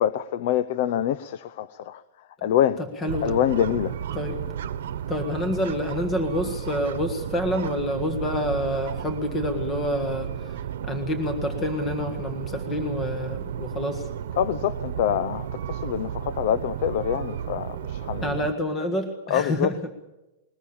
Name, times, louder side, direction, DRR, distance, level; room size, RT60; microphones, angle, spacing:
voice 1, 0.0-2.0 2.4-2.8 3.2-3.9 14.4-18.4 19.3-19.7, left 10 dB, 55° left, 0.7 m, -25 dB
voice 2, 3.0-3.4 4.1-4.4 5.1-10.6 10.8-14.1 18.2-19.9, left 1 dB, 15° left, 1.7 m, -28 dB
sound 1, 3.1-18.5, right 9 dB, 80° right, 1.1 m, -33 dB
21.0 x 20.0 x 7.2 m
supercardioid pair, 160°, 0 cm